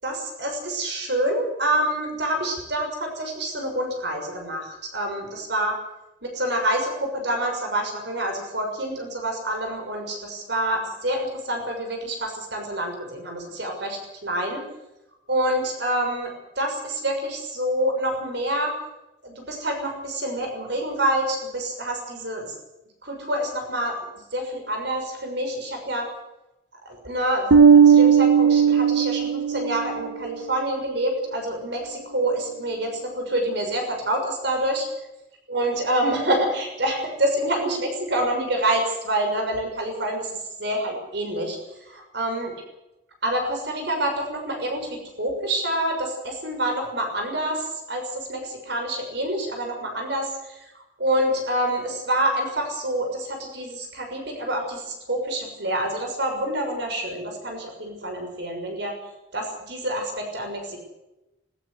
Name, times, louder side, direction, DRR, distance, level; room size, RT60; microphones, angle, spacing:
voice 1, 0.0-5.8 6.2-14.6 15.3-18.7 19.2-22.5 23.0-24.0 24.3-26.1 26.8-34.9 35.5-42.5 43.2-50.7 51.0-58.9 59.3-60.8, right 1 dB, 60° right, 3 dB, 6.3 m, -27 dB
Bass guitar, 27.5-29.9, right 7 dB, 85° right, 1.1 m, -15 dB
19.0 x 17.0 x 8.2 m, 0.94 s
head